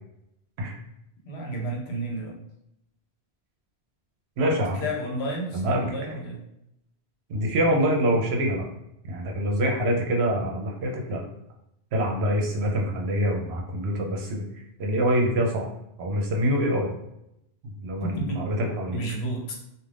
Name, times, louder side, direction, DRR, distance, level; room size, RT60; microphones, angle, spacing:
voice 1, 1.2-2.4 4.7-6.4 18.0-18.5 18.9-19.6, right 1 dB, 80° left, 0 dB, 1.0 m, -31 dB
voice 2, 4.4-4.8 5.5-5.9 7.3-8.7 9.1-11.2 11.9-14.4 14.8-15.7 16.0-16.9 17.6-19.0, equal, 75° right, 0 dB, 0.9 m, -25 dB
2.4 x 2.4 x 3.3 m, 0.83 s
omnidirectional pair, 1.1 m